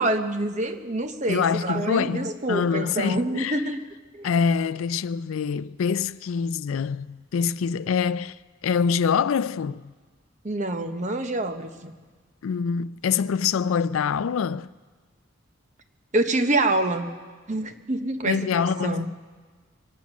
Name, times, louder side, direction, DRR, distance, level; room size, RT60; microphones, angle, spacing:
voice 1, 0.0-3.8 4.1-4.3 10.4-11.9 16.1-17.1 17.5-19.1, right 2 dB, 35° right, 0.9 m, -26 dB
voice 2, 1.3-3.6 4.2-8.4 8.6-9.9 12.4-14.7 18.3-19.1, left 6 dB, 85° left, 0.4 m, -25 dB
24.0 x 9.4 x 6.1 m
head